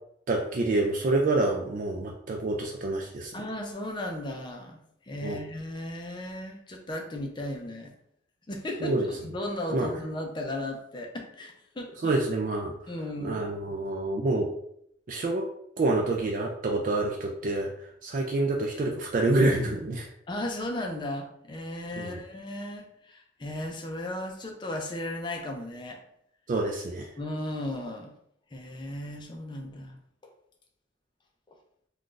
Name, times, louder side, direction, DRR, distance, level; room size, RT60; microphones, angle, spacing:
voice 1, 0.3-3.3 5.2-5.4 8.8-9.0 9.7-9.9 12.0-12.7 13.2-14.5 15.1-15.5 15.8-17.7 18.0-20.1 22.0-22.2 26.5-27.1, right 2 dB, 45° right, 1 dB, 0.3 m, -27 dB
voice 2, 3.3-4.8 5.1-7.9 8.5-12.1 12.9-13.4 20.3-26.0 27.2-28.1 28.5-30.0 31.5-31.6, left 1 dB, 25° left, 2 dB, 0.5 m, -35 dB
2.5 x 2.3 x 3.7 m, 0.71 s
head